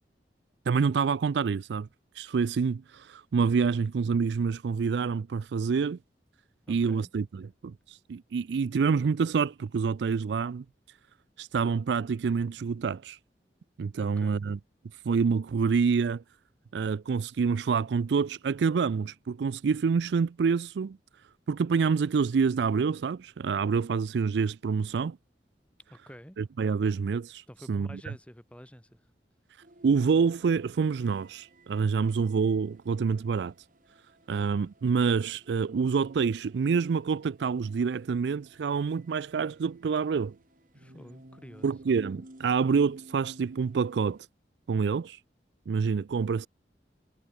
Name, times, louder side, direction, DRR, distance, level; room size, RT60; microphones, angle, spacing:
voice 1, 0.7-1.9 2.2-6.0 6.7-7.7 8.1-10.6 11.4-13.2 13.8-14.6 15.1-16.2 16.7-21.0 21.5-25.2 26.4-27.4 27.7-28.0 29.8-33.5 34.3-40.3 41.6-44.2 44.7-45.2 45.7-46.5, right 5 dB, 75° right, 0.4 m, -27 dB
voice 2, 6.7-7.1 14.0-14.4 25.9-26.4 27.5-29.0 40.7-41.7, equal, 5° left, 6.8 m, -49 dB
sound 1, 29.6-44.2, right 1 dB, 50° right, 2.3 m, -55 dB
head